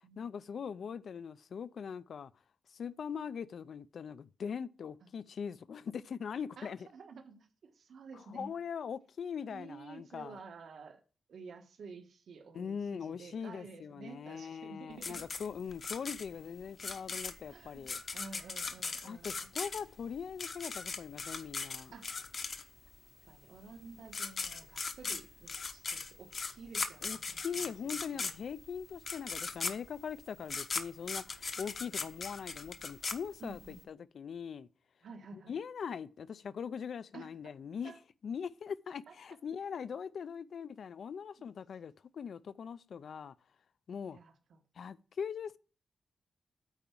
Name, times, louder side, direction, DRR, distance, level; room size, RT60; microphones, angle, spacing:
voice 1, 0.2-2.3 2.7-6.9 8.1-10.4 12.5-18.0 19.0-21.9 27.0-34.7 35.3-37.9 38.2-43.3 43.9-44.2 44.8-45.6, left 7 dB, 60° left, 0.4 m, -41 dB
voice 2, 6.6-8.5 9.5-11.0 11.3-15.3 17.5-19.5 21.9-22.1 23.3-28.3 33.4-33.8 35.0-35.5 37.1-37.5 37.8-38.0 39.1-39.2 44.1-44.6, right 4 dB, 75° right, 1.3 m, -51 dB
sound 1, 15.0-22.9 23.8-23.9 24.1-33.8, left 4 dB, 40° left, 0.8 m, -39 dB
8.9 x 4.6 x 7.1 m
wide cardioid pair, 170°, 0 cm